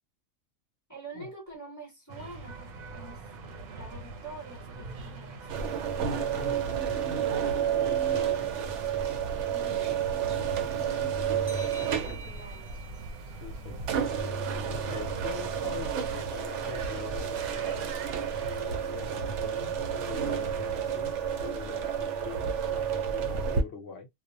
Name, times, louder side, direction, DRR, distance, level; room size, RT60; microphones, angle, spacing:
voice 1, 0.9-3.2 3.7-5.5 9.5-10.0 10.5-10.9 12.0-12.8, right 2 dB, 15° left, 1.1 m, -46 dB
sound 1, 2.1-20.9, right 3 dB, 85° right, 1.1 m, -43 dB
sound 2, 5.5-23.6, right 8 dB, 65° right, 0.8 m, -31 dB
voice 2, 6.0-8.8 11.5-12.0 13.4-13.8 14.7-17.9 18.4-24.1, left 5 dB, 60° left, 0.9 m, -43 dB
sound 3, 11.5-14.8, right 2 dB, 40° right, 0.5 m, -48 dB
2.4 x 2.0 x 2.7 m
omnidirectional pair, 1.5 m